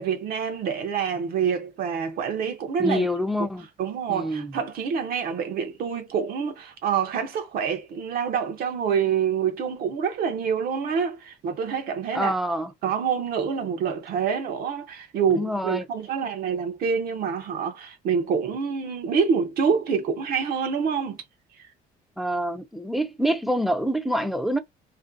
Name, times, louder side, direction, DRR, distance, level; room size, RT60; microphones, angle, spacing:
voice 1, 0.0-3.1 3.8-12.3 12.8-21.2 21.6-21.7, right 6 dB, 60° right, 0.6 m, -26 dB
voice 2, 2.8-3.7 4.1-4.5 12.1-12.7 15.3-15.9 22.2-24.6, equal, ahead, 0.4 m, -26 dB
2.4 x 2.2 x 2.5 m
cardioid pair, 110°, 17 cm